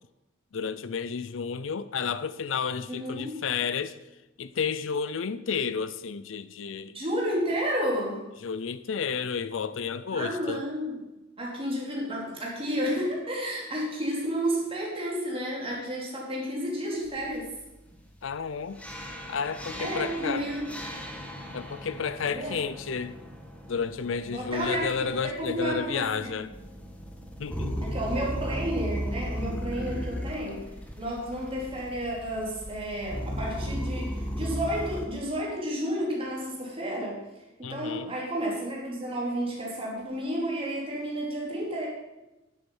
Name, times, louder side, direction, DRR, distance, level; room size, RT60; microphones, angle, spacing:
voice 1, 0.5-4.0 4.4-6.9 8.4-10.6 18.2-18.8 19.3-20.5 21.5-23.2 23.7-26.5 27.4-27.8 37.6-38.1, left 6 dB, 70° left, 0.5 m, -31 dB
voice 2, 2.9-3.4 6.9-8.2 10.1-11.0 11.4-17.5 19.8-20.7 22.2-22.6 24.3-26.4 27.8-30.6 31.0-37.2 37.6-41.9, equal, 30° right, 2.9 m, -31 dB
sound 1, 18.8-35.0, equal, 5° left, 1.4 m, -36 dB
10.0 x 8.0 x 5.4 m
head